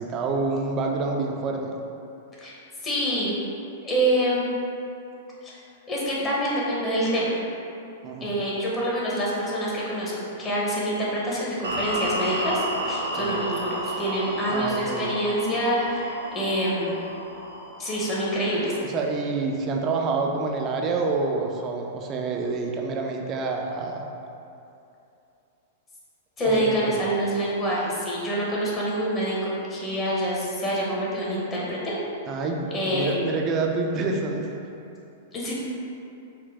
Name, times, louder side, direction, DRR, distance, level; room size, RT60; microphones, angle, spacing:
voice 1, 0.0-1.8 8.0-8.3 13.2-13.4 14.5-15.1 18.8-24.1 26.4-27.0 32.3-34.5, right 3 dB, 35° right, 1 dB, 0.4 m, -28 dB
voice 2, 2.8-3.4 3.8-4.5 5.9-7.4 8.2-10.1 10.4-16.9 17.8-18.7 26.4-32.0 32.7-33.2 35.3-35.5, equal, 25° left, -6 dB, 1.0 m, -26 dB
sound 1, 11.6-18.8, equal, 90° right, 0.5 m, -32 dB
4.1 x 2.2 x 3.4 m, 2.7 s
figure-of-eight pair, 105°, 0 cm